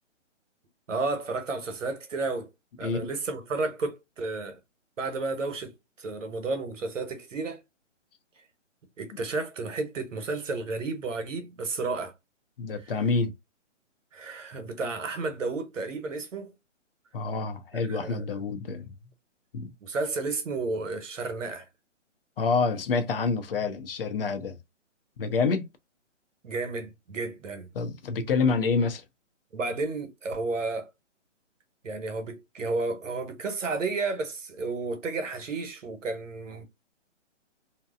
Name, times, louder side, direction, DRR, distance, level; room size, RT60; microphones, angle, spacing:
voice 1, 0.9-2.5 2.8-4.6 5.0-7.6 9.0-12.1 14.1-16.5 17.7-18.2 19.8-21.7 26.4-27.7 29.5-30.9 31.8-36.6, right 3 dB, 85° right, 1.0 m, -32 dB
voice 2, 12.6-13.3 17.1-18.9 19.5-19.7 22.4-24.6 25.2-25.7 27.7-29.0, left 4 dB, 50° left, 0.6 m, -27 dB
2.8 x 2.1 x 2.3 m
hypercardioid pair, 155°, 37 cm